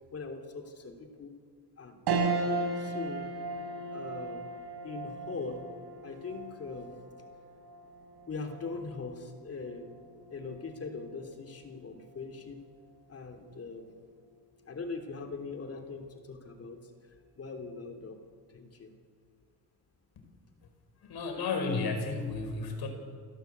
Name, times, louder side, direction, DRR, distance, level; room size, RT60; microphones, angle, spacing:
voice 1, 0.1-1.4 1.8-2.3 2.8-3.4 3.9-4.5 4.8-7.0 8.3-10.0 10.3-12.6 13.1-13.9 14.7-16.9 17.4-18.2 18.5-18.9 21.0-21.3, left 4 dB, 40° left, 5 dB, 3.0 m, -41 dB
sound 1, 2.1-11.7 12.1-12.2 13.6-14.0, right 3 dB, 80° right, 4.1 m, -37 dB
voice 2, 21.0-22.9, left 4 dB, 75° left, 5 dB, 5.1 m, -32 dB
29.5 x 16.0 x 8.1 m, 2.1 s
cardioid pair, 160°, 39 cm